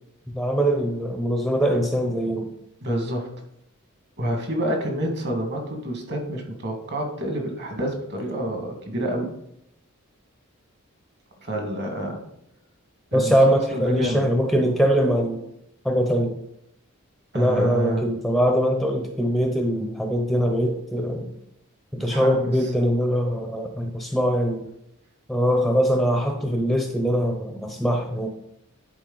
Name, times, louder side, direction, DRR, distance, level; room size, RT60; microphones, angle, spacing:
voice 1, 0.3-2.5 13.1-15.4 15.8-16.3 17.3-21.3 21.9-24.7 25.3-28.3, equal, ahead, 3 dB, 0.6 m, -22 dB
voice 2, 2.8-3.3 4.2-9.3 11.4-12.2 13.1-14.2 17.3-18.0 22.0-22.5, right 1 dB, 50° right, 3 dB, 1.7 m, -28 dB
10.5 x 4.2 x 3.8 m, 0.77 s
head